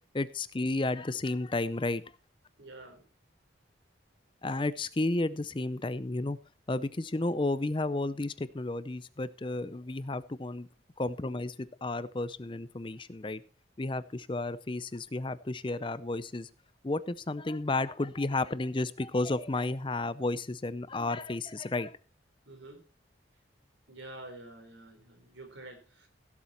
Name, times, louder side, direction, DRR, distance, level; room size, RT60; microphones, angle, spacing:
voice 1, 0.1-2.0 4.4-6.4 6.7-10.7 11.0-13.4 13.8-16.5 16.8-22.0, left 2 dB, 25° left, 16 dB, 0.5 m, -32 dB
voice 2, 2.6-3.0 22.5-22.8 23.9-26.1, right 2 dB, 85° right, 5 dB, 4.0 m, -48 dB
16.5 x 7.4 x 4.4 m, 0.35 s
head